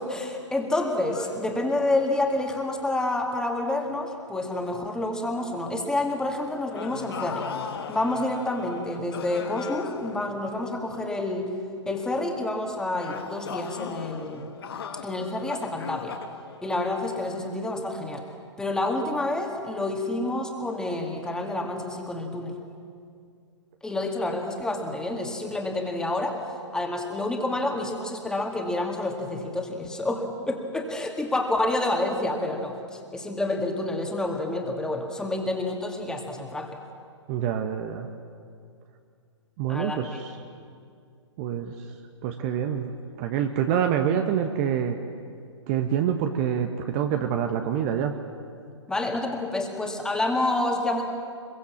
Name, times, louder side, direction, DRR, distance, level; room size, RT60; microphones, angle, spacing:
voice 1, 0.0-7.5 7.9-11.5 11.9-14.5 15.0-16.2 16.6-18.2 18.6-22.6 23.8-26.4 26.7-36.8 39.7-40.0 48.9-51.0, left 2 dB, 5° left, 2 dB, 2.3 m, -28 dB
sound 1, 1.1-4.2 4.6-4.9 6.7-11.3 13.0-17.5, left 7 dB, 55° left, 1.5 m, -40 dB
voice 2, 37.3-38.1 39.6-40.3 41.4-41.7 42.2-42.9 43.2-45.0 45.7-48.1, right 9 dB, 30° right, 5 dB, 1.3 m, -26 dB
25.5 x 23.0 x 7.3 m, 2.2 s
figure-of-eight pair, 125°, 15 cm